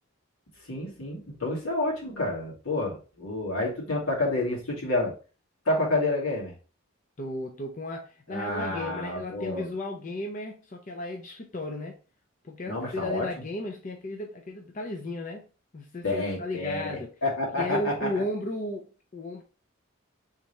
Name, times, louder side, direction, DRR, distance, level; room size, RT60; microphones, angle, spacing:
voice 1, 0.6-5.1 5.7-6.5 8.3-9.7 12.7-13.3 16.0-18.2, left 2 dB, 85° left, 2.1 m, -29 dB
voice 2, 7.2-12.0 12.4-15.5 15.7-17.1 17.6-19.4, left 1 dB, 35° left, 0.5 m, -34 dB
3.6 x 3.3 x 4.1 m
head